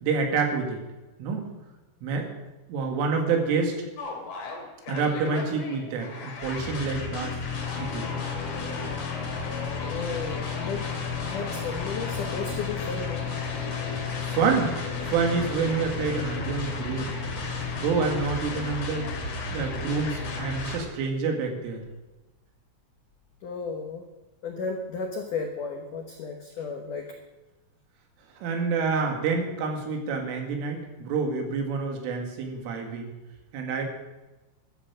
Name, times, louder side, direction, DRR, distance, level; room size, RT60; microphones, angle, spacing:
voice 1, 0.0-0.8 1.2-1.5 2.0-2.3 2.7-3.7 4.9-7.4 7.8-8.1 14.3-14.7 15.0-17.1 17.8-19.1 19.5-21.8 28.4-33.1 33.5-33.8, right 4 dB, 80° right, 3 dB, 4.7 m, -27 dB
sound 1, 4.0-20.8, left 4 dB, 45° left, 3.7 m, -32 dB
voice 2, 9.8-10.8 11.2-13.3 23.4-24.0 24.4-27.1, left 4 dB, 85° left, 3 dB, 1.8 m, -34 dB
14.0 x 13.0 x 6.4 m, 1.1 s
omnidirectional pair, 5.7 m